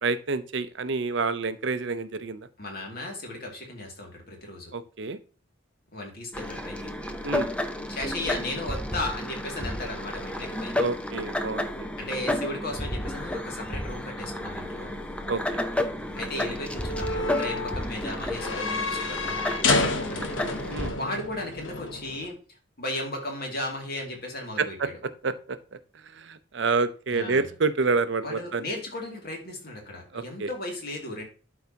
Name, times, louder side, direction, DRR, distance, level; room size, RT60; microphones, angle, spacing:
voice 1, 0.0-2.5 4.7-5.2 7.2-7.5 10.8-11.9 15.3-15.4 20.7-21.0 24.6-24.9 25.2-25.6 25.9-28.6 30.1-30.5, right 4 dB, 60° right, 12 dB, 0.6 m, -28 dB
voice 2, 2.6-4.7 5.9-6.9 7.9-10.8 12.0-15.0 16.2-24.7 27.1-27.5 28.2-31.2, left 1 dB, 50° left, 1 dB, 2.4 m, -36 dB
sound 1, 6.3-20.9, left 1 dB, 5° left, 0.6 m, -32 dB
sound 2, 14.1-22.3, left 3 dB, 70° left, 1.1 m, -31 dB
12.0 x 4.7 x 2.8 m, 0.37 s
head